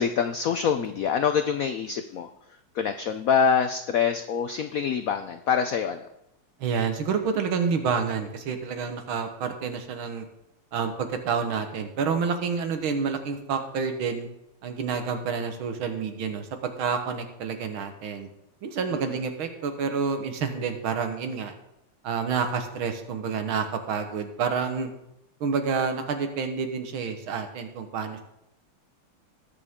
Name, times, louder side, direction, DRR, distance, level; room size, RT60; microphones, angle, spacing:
voice 1, 0.0-2.3 2.7-6.1 18.9-19.2, left 7 dB, 90° left, 9 dB, 0.7 m, -25 dB
voice 2, 6.6-10.3 10.7-14.3 14.6-18.3 18.6-21.5 22.0-24.9 25.4-28.2, right 5 dB, 85° right, 7 dB, 2.0 m, -28 dB
19.0 x 6.8 x 3.7 m, 0.83 s
omnidirectional pair, 2.2 m